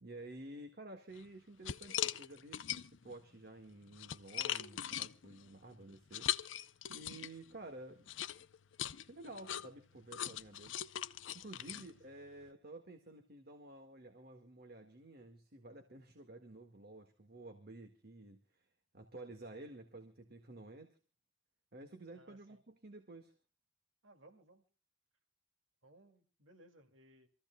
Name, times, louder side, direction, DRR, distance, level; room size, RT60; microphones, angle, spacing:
voice 1, 0.0-6.5 6.9-8.1 9.0-10.8 11.3-18.7 18.9-21.0 21.7-23.3, right 2 dB, 55° right, 5 dB, 1.8 m, -52 dB
sound 1, 1.1-1.3 1.6-3.1 3.7-7.5 8.1-12.5, left 11 dB, 80° left, 0.6 m, -41 dB
voice 2, 22.1-22.6 24.0-24.6 25.8-27.3, right 1 dB, 85° right, 6 dB, 2.4 m, -63 dB
27.0 x 15.0 x 2.3 m, 0.33 s
head